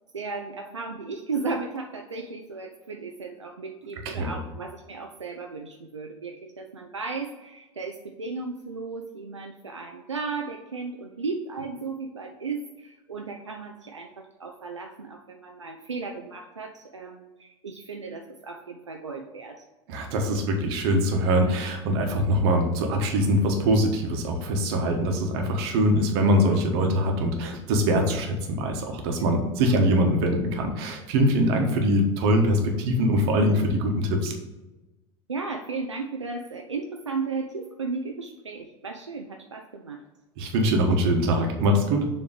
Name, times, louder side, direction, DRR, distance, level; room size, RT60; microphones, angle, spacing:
voice 1, 0.1-19.6 29.2-29.3 29.7-29.8 35.3-40.0, right 4 dB, 90° right, 2 dB, 0.5 m, -35 dB
voice 2, 4.0-4.4 19.9-34.3 40.4-42.1, equal, 60° right, 3 dB, 1.3 m, -23 dB
7.1 x 3.2 x 4.9 m, 1.1 s
figure-of-eight pair, 80°, 15 cm